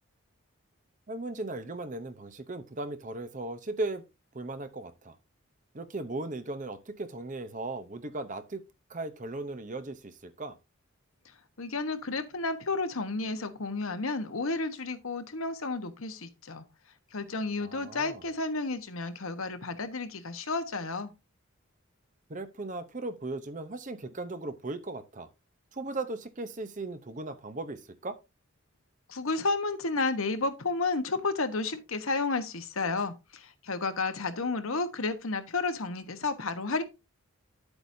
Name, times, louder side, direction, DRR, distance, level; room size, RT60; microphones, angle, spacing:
voice 1, 1.1-4.0 4.3-5.2 5.7-8.6 8.9-10.6 17.6-18.2 22.3-25.3 25.7-28.2, right 2 dB, 35° right, 0.8 m, -37 dB
voice 2, 11.6-16.6 17.1-21.1 29.1-36.8, left 3 dB, 75° left, 1.2 m, -32 dB
10.0 x 8.0 x 2.7 m
head